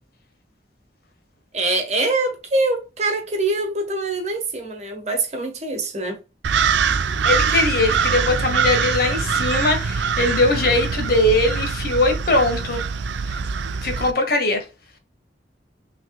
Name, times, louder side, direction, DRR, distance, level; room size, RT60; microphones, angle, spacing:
voice 1, 1.5-6.2, right 2 dB, 40° right, 1.2 m, -24 dB
sound 1, 6.4-14.1, right 6 dB, 85° right, 0.4 m, -23 dB
voice 2, 7.2-12.8 13.3-13.4 13.8-14.6, left 2 dB, 55° left, 1.3 m, -20 dB
6.1 x 3.2 x 2.2 m
head